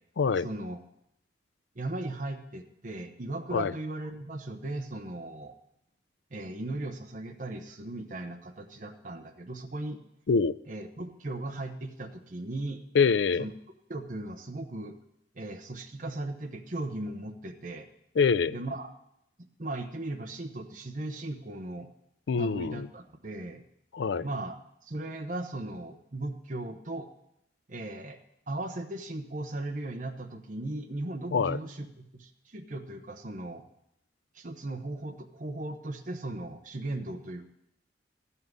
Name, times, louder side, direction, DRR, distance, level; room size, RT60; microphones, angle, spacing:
voice 1, 0.4-0.8 1.8-5.5 6.3-10.0 10.7-12.8 13.4-13.5 13.9-14.9 15.3-17.9 18.5-18.9 19.6-21.9 22.4-23.6 24.2-24.5 24.8-27.1 27.7-28.2 28.5-31.9 32.1-33.6 34.3-37.4, right 2 dB, 45° right, 4 dB, 0.9 m, -37 dB
voice 2, 10.3-10.6 12.9-13.5 18.2-18.6 22.3-22.9 23.9-24.3 31.3-31.6, left 5 dB, 85° left, 17 dB, 0.4 m, -25 dB
14.0 x 5.6 x 9.5 m, 0.80 s
head